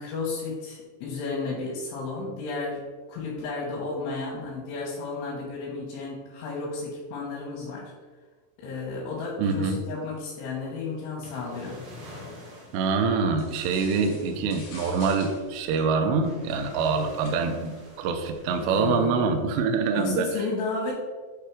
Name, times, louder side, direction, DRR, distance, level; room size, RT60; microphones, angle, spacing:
voice 1, 0.0-7.9 8.6-11.8 18.6-19.3 19.9-20.9, left 3 dB, 90° left, -5 dB, 3.7 m, -33 dB
voice 2, 9.4-9.8 12.7-20.3, right 4 dB, 85° right, 5 dB, 2.6 m, -25 dB
sound 1, 9.7-20.1, left 1 dB, 65° right, 1.9 m, -48 dB
sound 2, 13.3-18.6, left 3 dB, 60° left, 3.1 m, -48 dB
8.5 x 3.4 x 4.6 m, 1.4 s
omnidirectional pair, 5.3 m